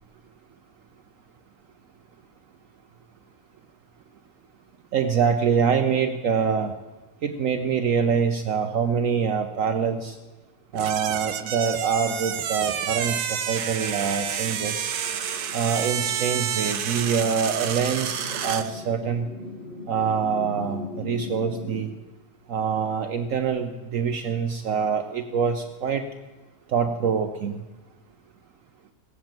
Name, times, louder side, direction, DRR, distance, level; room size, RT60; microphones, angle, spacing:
voice 1, 4.9-6.7 7.2-10.2 10.7-14.9 15.5-19.3 19.9-21.9 22.5-26.0 26.7-27.6, right 6 dB, 65° right, 6 dB, 1.1 m, -25 dB
sound 1, 10.7-18.7, right 9 dB, 90° right, 1.3 m, -29 dB
sound 2, 14.1-21.8, left 3 dB, 40° left, 2.2 m, -40 dB
17.0 x 7.8 x 8.8 m, 1.1 s
omnidirectional pair, 1.6 m